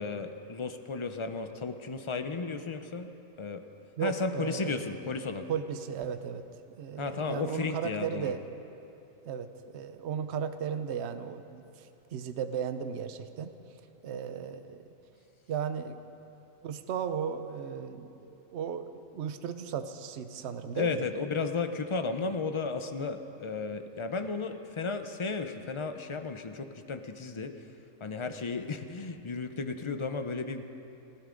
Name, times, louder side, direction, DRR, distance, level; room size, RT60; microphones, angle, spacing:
voice 1, 0.0-3.1 3.4-3.6 4.0-5.5 7.0-8.3 20.7-27.7 28.0-30.6, left 4 dB, 50° left, 8 dB, 0.3 m, -34 dB
voice 2, 4.0-4.8 5.5-6.4 6.8-8.4 9.3-13.5 14.0-14.8 15.5-16.0 16.6-21.0, right 7 dB, 55° right, 9 dB, 0.9 m, -35 dB
30.0 x 12.0 x 3.8 m, 2.8 s
omnidirectional pair, 1.5 m